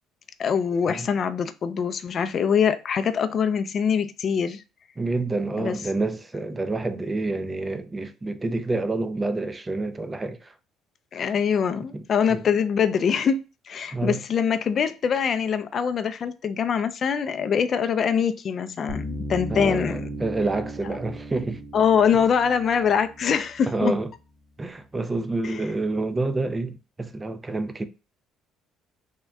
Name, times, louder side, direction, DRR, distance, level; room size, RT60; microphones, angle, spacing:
voice 1, 0.4-4.6 5.6-5.8 11.1-13.4 13.7-20.1 21.7-23.9 25.4-25.7, left 7 dB, 45° left, 0.3 m, -23 dB
voice 2, 5.0-10.5 11.2-11.3 11.9-12.0 12.3-12.5 13.9-14.2 19.5-21.6 22.1-22.2 23.7-24.1 24.6-27.9, right 2 dB, 20° right, 0.4 m, -28 dB
sound 1, 18.9-24.0, right 1 dB, 50° right, 1.1 m, -36 dB
3.6 x 2.1 x 3.3 m
cardioid pair, 95°, 0 cm